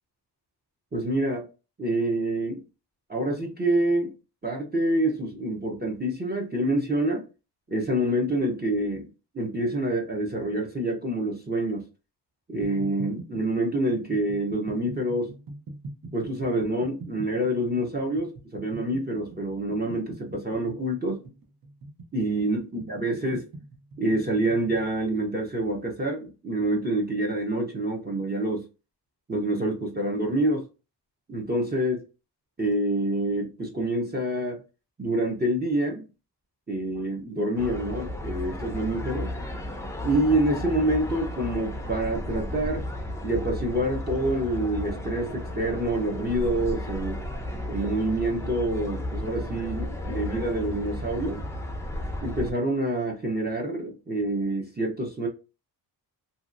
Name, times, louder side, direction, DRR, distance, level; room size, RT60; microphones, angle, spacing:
voice 1, 0.9-1.5 1.8-2.6 3.1-4.1 4.4-7.2 7.7-9.1 9.3-11.8 12.5-15.3 16.1-21.2 22.1-23.5 24.0-28.6 29.3-30.6 31.3-32.0 32.6-34.6 35.0-36.0 36.7-39.3 40.0-42.9 43.2-47.2 47.7-51.4 52.2-55.3, right 1 dB, 25° right, 0.7 m, -27 dB
sound 1, 12.6-24.9, right 2 dB, 55° right, 0.8 m, -43 dB
sound 2, 37.6-52.5, left 1 dB, 5° left, 0.5 m, -33 dB
2.9 x 2.8 x 2.4 m
wide cardioid pair, 130°, 41 cm